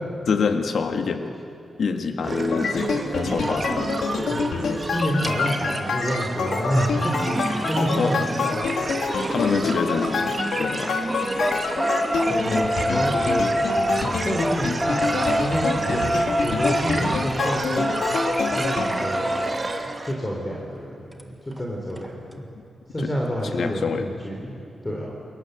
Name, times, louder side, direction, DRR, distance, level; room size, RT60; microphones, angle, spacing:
voice 1, 0.3-1.3 1.8-3.0 3.2-3.9 8.0-8.1 9.3-10.9 23.0-23.1 23.5-24.1, left 5 dB, 60° left, 6 dB, 1.8 m, -26 dB
sound 1, 2.2-20.1, right 2 dB, 25° right, 1.6 m, -30 dB
sound 2, 2.5-18.9, left 5 dB, 85° left, 2.3 m, -27 dB
voice 2, 4.9-7.3 7.7-8.7 12.3-13.5 14.0-16.1 16.4-17.9 18.5-19.3 20.0-22.4 22.9-25.1, equal, 15° left, -2 dB, 3.5 m, -28 dB
sound 3, 5.2-5.3 7.0-10.5 10.8-19.5 21.2-21.3 21.6-21.7 22.0-22.1, equal, 5° right, 1.6 m, -27 dB
29.0 x 22.0 x 8.1 m, 2.6 s
wide cardioid pair, 160°, 0 cm